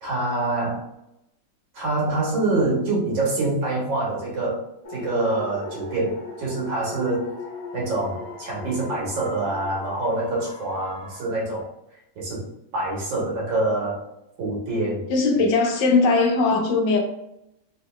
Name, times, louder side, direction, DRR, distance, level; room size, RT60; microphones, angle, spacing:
voice 1, 0.0-0.9 1.7-4.6 4.9-7.4 7.7-11.7 12.2-14.0 14.4-15.1, right 2 dB, 85° right, -4 dB, 2.0 m, -25 dB
sound 1, 4.8-11.2, left 3 dB, 55° left, 1.3 m, -38 dB
voice 2, 15.1-17.0, left 3 dB, 85° left, 2 dB, 1.4 m, -19 dB
3.9 x 2.7 x 2.3 m, 0.85 s
omnidirectional pair, 2.0 m